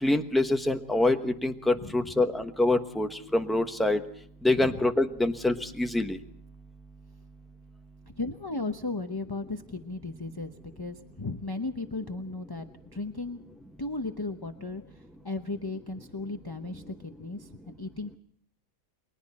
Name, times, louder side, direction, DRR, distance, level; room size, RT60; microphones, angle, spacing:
voice 1, 0.0-4.0 4.4-6.2, left 2 dB, ahead, 5 dB, 1.0 m, -25 dB
voice 2, 1.8-2.1 4.6-4.8 8.2-13.4 13.8-18.2, left 3 dB, 25° left, 6 dB, 0.6 m, -36 dB
29.5 x 22.5 x 4.3 m, 0.64 s
omnidirectional pair, 1.7 m